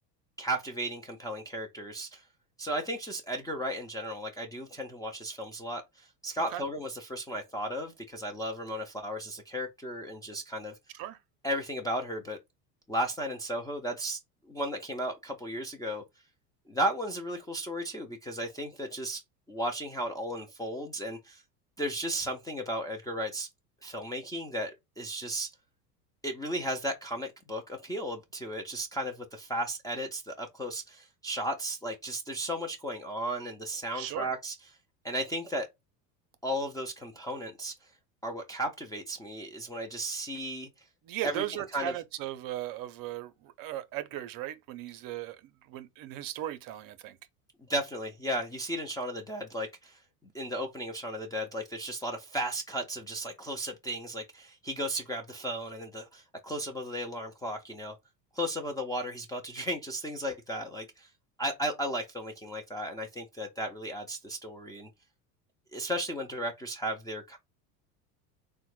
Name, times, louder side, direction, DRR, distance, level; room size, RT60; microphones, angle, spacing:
voice 1, 0.4-2.2 2.6-10.7 11.4-12.4 12.9-14.2 14.5-16.0 16.7-19.2 19.5-21.4 21.8-23.5 23.8-24.7 25.0-25.5 26.2-34.5 35.0-35.7 36.4-37.7 38.2-40.7 41.2-41.9 47.7-50.0 50.3-58.0 58.3-61.1 61.4-64.9 65.7-67.4, right 1 dB, 10° left, 0.4 m, -35 dB
voice 2, 33.9-34.3 41.0-45.4 45.7-47.2, right 13 dB, 45° right, 0.6 m, -37 dB
3.6 x 2.2 x 3.0 m
hypercardioid pair, 90°, 49 cm